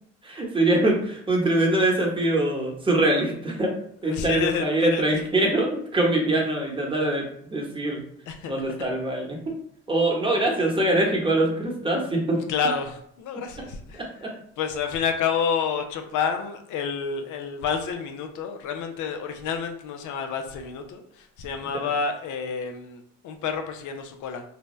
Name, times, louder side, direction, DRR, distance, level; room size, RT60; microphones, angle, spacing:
voice 1, 0.2-3.7 4.0-8.0 8.5-9.5 9.9-12.4 13.9-14.3, right 1 dB, 15° right, -1 dB, 1.0 m, -23 dB
voice 2, 4.0-5.0 8.3-8.5 12.4-24.4, left 6 dB, 70° left, 5 dB, 0.6 m, -29 dB
2.7 x 2.2 x 3.1 m, 0.67 s
supercardioid pair, 65°, 31 cm